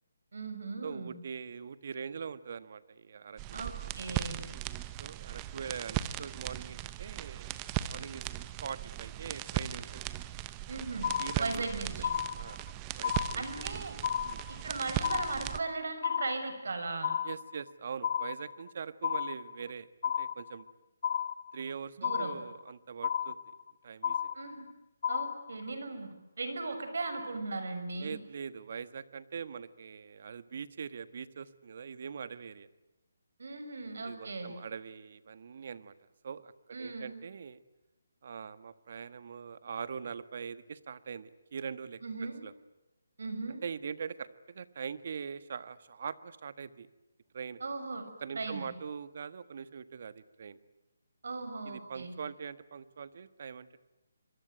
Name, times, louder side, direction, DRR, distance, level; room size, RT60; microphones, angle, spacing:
voice 1, 0.3-1.2 3.5-4.4 10.7-12.1 13.3-14.0 14.6-17.2 22.0-22.3 24.3-24.7 25.1-28.2 33.4-34.5 36.7-37.2 42.0-42.4 43.2-43.6 47.6-48.1 48.3-48.7 51.2-52.2, right 3 dB, 70° right, 8 dB, 6.2 m, -38 dB
voice 2, 0.8-3.7 5.0-7.5 7.8-8.2 8.6-10.0 11.2-11.7 12.3-12.6 13.0-13.4 14.2-14.4 17.2-20.6 21.5-23.5 23.8-24.4 28.0-32.7 34.0-35.9 36.2-36.5 36.8-37.6 38.2-42.0 42.4-42.5 43.6-46.9 47.3-47.6 48.2-50.6 51.6-53.8, right 6 dB, 50° right, 14 dB, 1.4 m, -42 dB
sound 1, 3.4-15.6, right 13 dB, 20° right, 0.9 m, -38 dB
sound 2, 11.0-11.7 12.0-12.7 13.0-13.7 14.0-14.7 15.0-15.7 16.0-16.7 17.0-17.7 18.0-18.7 19.0-19.7 20.0-20.7 21.0-21.7 22.0-22.7 23.0-23.7 24.0-24.7 25.0-25.7, left 8 dB, 45° left, 0.9 m, -33 dB
26.5 x 23.0 x 9.3 m, 0.98 s
hypercardioid pair, 165°, 0 cm